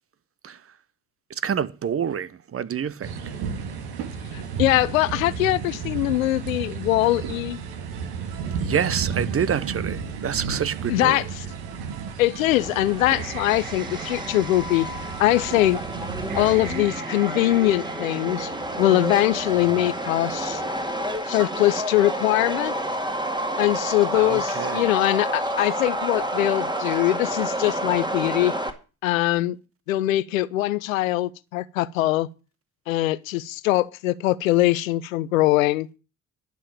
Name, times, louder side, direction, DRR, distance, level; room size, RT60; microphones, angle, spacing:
voice 1, 0.4-0.7 1.3-3.2 8.6-11.3 24.1-25.0, right 8 dB, 35° right, 0.9 m, -28 dB
sound 1, 3.0-17.0, right 6 dB, 70° right, 1.9 m, -33 dB
voice 2, 4.3-7.6 10.9-11.2 12.2-14.9 15.2-15.8 16.4-18.5 18.8-20.6 21.3-22.7 23.6-28.5 29.0-29.6 29.9-32.3 32.9-35.9, left 16 dB, 85° left, 0.6 m, -22 dB
sound 2, 7.0-20.7, right 9 dB, 55° right, 1.5 m, -42 dB
Subway metro underground, 12.6-28.7, right 1 dB, 10° right, 2.0 m, -29 dB
11.5 x 5.5 x 8.7 m
hypercardioid pair, 50°, 39 cm